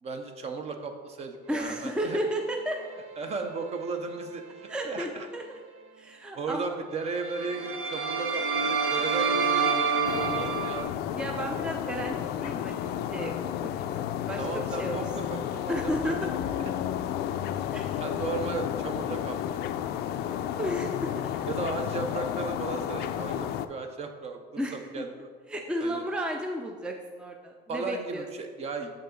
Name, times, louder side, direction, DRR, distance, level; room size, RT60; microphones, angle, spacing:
voice 1, 0.0-2.2 3.2-4.4 4.8-5.3 6.3-10.9 14.4-16.1 16.6-16.8 18.0-19.4 21.5-25.3 25.8-26.0 27.7-28.9, right 4 dB, 35° right, 6 dB, 0.7 m, -35 dB
voice 2, 1.5-2.8 4.7-5.6 6.0-6.7 11.1-13.3 13.6-13.7 14.1-15.0 15.7-16.3 17.7-18.0 20.1-21.4 24.6-25.0 25.5-28.3, equal, 5° right, 2 dB, 0.5 m, -33 dB
sound 1, 2.5-4.3 4.7-4.9 7.1-10.8, right 5 dB, 85° right, 0.9 m, -29 dB
sound 2, 10.0-23.7, left 10 dB, 60° left, 0.4 m, -32 dB
7.1 x 5.3 x 3.8 m, 1.5 s
cardioid pair, 125°, 18 cm